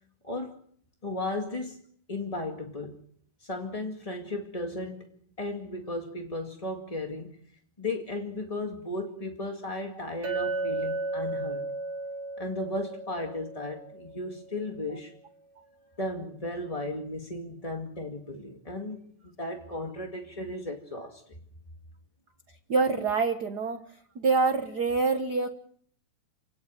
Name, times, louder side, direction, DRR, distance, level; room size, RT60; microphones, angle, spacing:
voice 1, 0.2-0.6 1.0-1.8 2.1-3.0 3.4-5.1 5.4-7.3 7.8-11.7 12.4-15.1 16.0-19.0 19.2-21.2, left 2 dB, 15° left, 2 dB, 1.5 m, -35 dB
Chink clink, 10.2-14.5, right 2 dB, 75° right, 3.6 m, -34 dB
voice 2, 22.7-23.8 24.1-25.5, right 4 dB, 55° right, 7 dB, 1.1 m, -26 dB
29.0 x 18.5 x 7.7 m, 0.65 s
omnidirectional pair, 3.6 m